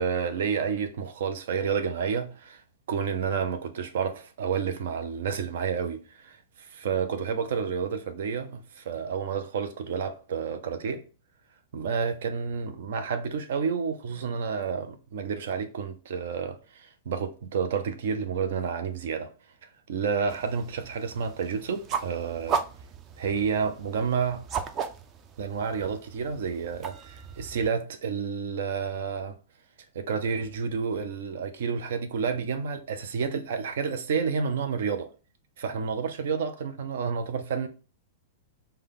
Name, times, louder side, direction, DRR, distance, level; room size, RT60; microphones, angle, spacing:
voice 1, 0.0-11.0 11.7-19.3 19.6-22.6 23.2-24.4 25.4-29.4 29.9-35.1 35.6-37.7, right 6 dB, 70° right, 0.6 m, -30 dB
sound 1, 20.3-27.7, right 6 dB, 25° right, 0.4 m, -36 dB
5.2 x 2.3 x 3.7 m
supercardioid pair, 155°, 0 cm